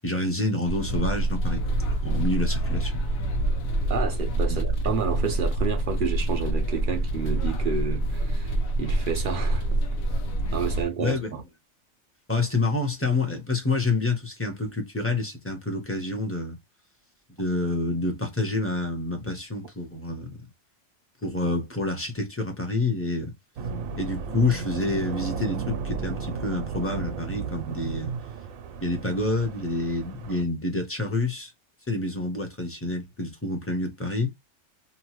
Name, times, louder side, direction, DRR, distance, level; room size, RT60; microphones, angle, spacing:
voice 1, 0.0-1.7 2.0-2.9 4.5-4.6 11.0-11.4 12.3-16.6 17.4-20.4 21.2-23.3 24.0-28.1 28.8-31.5 31.9-34.3, left 2 dB, 15° left, 0.6 m, -28 dB
sound 1, 0.6-10.8, right 1 dB, 85° left, 1.2 m, -26 dB
voice 2, 3.9-9.8 10.5-11.4, right 6 dB, 60° right, 0.5 m, -30 dB
sound 2, 23.6-30.4, right 5 dB, 90° right, 1.0 m, -34 dB
2.8 x 2.2 x 2.9 m
omnidirectional pair, 1.4 m